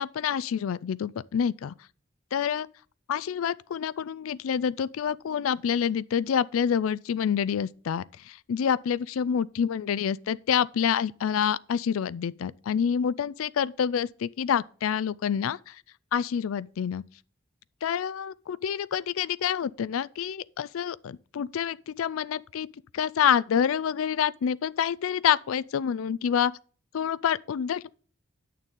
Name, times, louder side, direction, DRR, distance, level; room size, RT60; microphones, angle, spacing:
voice 1, 0.0-1.7 2.3-2.7 3.1-15.7 16.1-17.0 17.8-22.7 22.9-26.5 26.9-27.9, left 8 dB, 80° left, 0.4 m, -27 dB
8.8 x 6.6 x 3.7 m
head